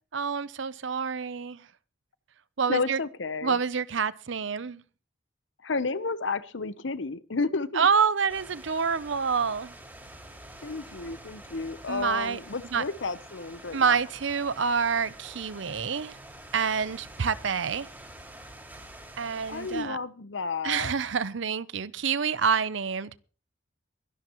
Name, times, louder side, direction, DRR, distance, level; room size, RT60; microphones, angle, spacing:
voice 1, 0.1-1.7 2.6-3.0 3.4-4.8 7.7-9.8 11.9-12.4 12.7-12.8 13.7-16.2 16.5-17.9 19.2-20.0 20.6-23.2, right 6 dB, 70° right, 0.7 m, -27 dB
voice 2, 2.7-3.6 5.6-7.9 10.6-14.0 19.5-20.9, left 4 dB, 70° left, 0.9 m, -32 dB
sound 1, 8.3-19.8, right 1 dB, 10° right, 5.5 m, -47 dB
23.0 x 11.5 x 3.0 m
head